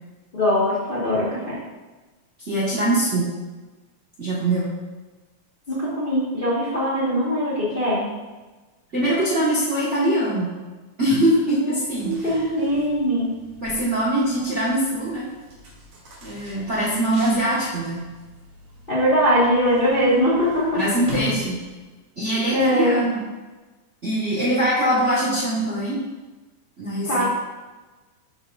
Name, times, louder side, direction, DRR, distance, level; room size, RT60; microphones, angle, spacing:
voice 1, 0.3-1.6 5.7-8.1 11.6-11.7 12.0-13.3 18.9-20.8 22.5-23.0 27.1-27.2, equal, 55° left, -8 dB, 0.6 m, -21 dB
voice 2, 2.5-3.3 4.2-4.7 8.9-10.5 11.0-12.4 13.6-15.3 16.2-18.1 20.7-21.6 22.2-23.2 24.0-26.0 26.8-27.2, right 1 dB, 50° right, -8 dB, 0.8 m, -22 dB
sound 1, 11.7-22.0, left 3 dB, 65° right, 3.0 m, -41 dB
11.0 x 3.8 x 2.4 m, 1.2 s
omnidirectional pair, 3.4 m